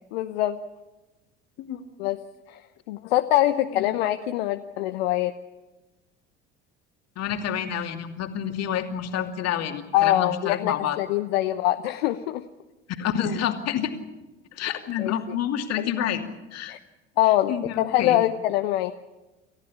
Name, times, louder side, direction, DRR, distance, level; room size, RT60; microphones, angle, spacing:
voice 1, 0.1-0.6 2.0-2.2 2.5-2.6 2.9-5.3 9.9-12.4 13.3-13.4 15.0-15.1 15.8-15.9 16.7-16.8 17.2-18.9, left 14 dB, 75° left, 8 dB, 0.9 m, -24 dB
voice 2, 7.2-11.0 13.0-13.9 14.5-16.2 16.5-16.8 17.5-18.2, left 9 dB, 55° left, 5 dB, 2.7 m, -28 dB
28.5 x 14.5 x 8.6 m, 1.1 s
hypercardioid pair, 65°, 31 cm